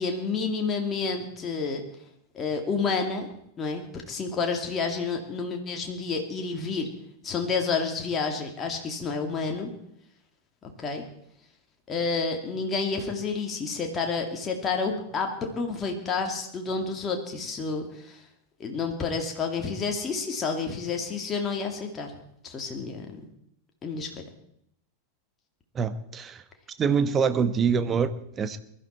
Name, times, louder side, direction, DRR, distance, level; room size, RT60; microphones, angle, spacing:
voice 1, 0.0-1.8 2.3-3.3 3.6-6.9 7.2-9.7 10.8-11.0 11.9-18.2 18.6-22.1 22.4-23.1 23.8-24.2, left 4 dB, 25° left, 2.4 m, -29 dB
voice 2, 25.7-26.4 26.8-28.6, right 6 dB, 25° right, 1.2 m, -25 dB
22.5 x 12.5 x 4.5 m
figure-of-eight pair, 90°, 0 cm